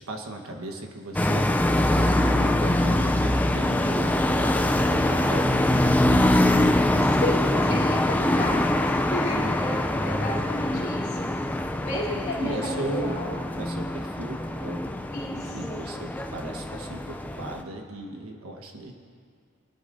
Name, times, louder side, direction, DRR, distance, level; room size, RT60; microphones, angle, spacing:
voice 1, 0.1-5.8 10.7-10.8 12.4-13.2 13.5-15.0 15.3-18.9, right 1 dB, 70° right, 3 dB, 1.3 m, -36 dB
sound 1, 1.1-17.6, left 1 dB, 5° left, 0.3 m, -24 dB
voice 2, 7.0-11.0 11.8-13.3 15.1-15.8, left 1 dB, 45° left, -8 dB, 3.2 m, -32 dB
21.5 x 11.0 x 2.6 m, 2.2 s
head